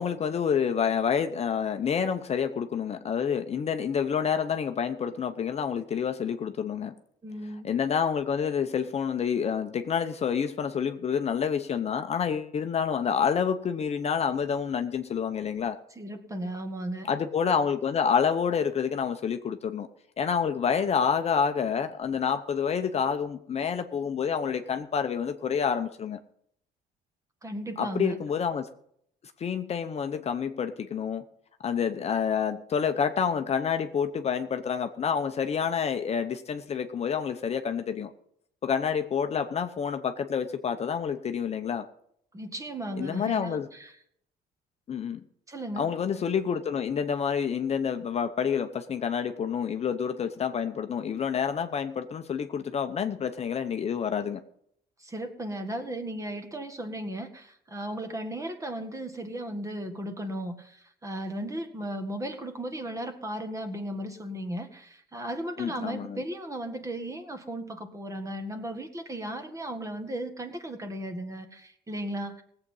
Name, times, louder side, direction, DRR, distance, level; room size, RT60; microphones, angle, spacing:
voice 1, 0.0-6.9 7.6-15.8 17.1-19.9 20.2-26.2 27.8-28.7 29.4-31.2 31.6-38.1 38.6-41.9 43.0-43.7 44.9-45.2 45.8-54.4 65.6-66.2, left 7 dB, 40° left, 7 dB, 0.9 m, -28 dB
voice 2, 7.2-7.7 15.9-17.1 27.4-28.2 42.3-44.0 45.5-45.9 55.0-72.4, right 1 dB, 20° right, 7 dB, 1.8 m, -36 dB
18.0 x 8.0 x 5.5 m, 0.70 s
cardioid pair, 110°, 17 cm